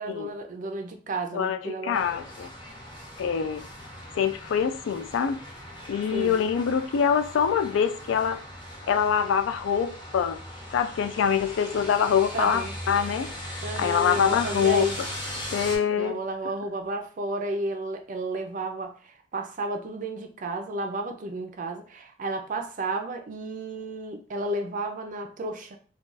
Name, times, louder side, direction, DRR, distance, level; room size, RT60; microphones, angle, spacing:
voice 1, 0.0-2.0 6.1-6.4 12.3-12.8 13.6-15.0 15.9-25.8, right 2 dB, 40° right, 0.4 m, -32 dB
voice 2, 1.3-2.5 3.2-3.7 4.1-5.4 5.9-8.4 8.9-10.4 10.7-13.4 13.8-14.9 15.5-16.2, left 7 dB, 65° left, 0.3 m, -25 dB
sound 1, 1.9-15.8, equal, 25° left, 0.8 m, -39 dB
2.4 x 2.3 x 3.9 m
head